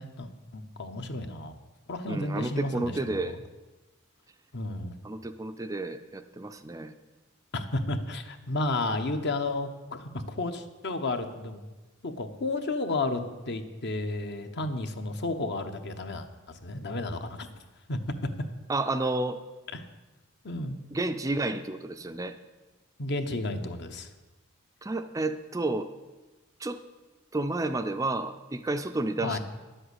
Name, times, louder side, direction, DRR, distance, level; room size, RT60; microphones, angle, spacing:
voice 1, 0.0-1.6 1.9-3.4 4.5-5.0 7.5-11.6 12.0-17.5 17.9-18.3 19.7-19.8 20.4-20.8 23.0-24.1 29.2-29.4, left 2 dB, 50° left, 8 dB, 1.0 m, -32 dB
voice 2, 2.1-3.4 5.0-6.9 18.7-19.4 20.9-22.4 24.8-25.9 26.6-26.8 27.3-29.4, right 2 dB, 15° right, 9 dB, 0.4 m, -31 dB
10.5 x 7.8 x 8.1 m, 1.2 s
head